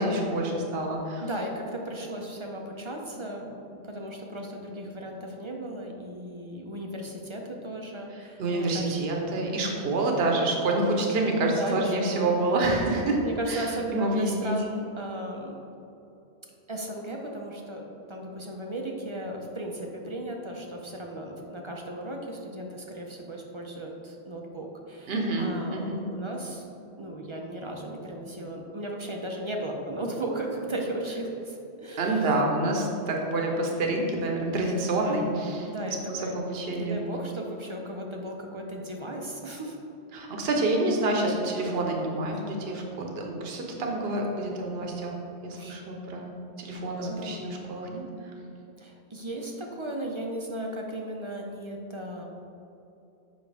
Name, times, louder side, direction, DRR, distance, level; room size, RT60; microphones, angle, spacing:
voice 1, 0.0-1.2 8.4-13.2 13.5-14.5 25.1-26.0 32.0-35.7 36.1-37.0 40.1-45.1 45.4-48.0, right 2 dB, 65° right, 1 dB, 1.1 m, -27 dB
voice 2, 1.2-9.4 11.4-12.3 13.2-15.6 16.7-26.7 27.0-32.3 35.7-36.4 36.7-39.8 45.5-45.8 47.0-47.5 48.8-52.2, right 1 dB, 35° right, 1 dB, 0.6 m, -36 dB
7.9 x 5.6 x 3.4 m, 2.9 s
omnidirectional pair, 1.1 m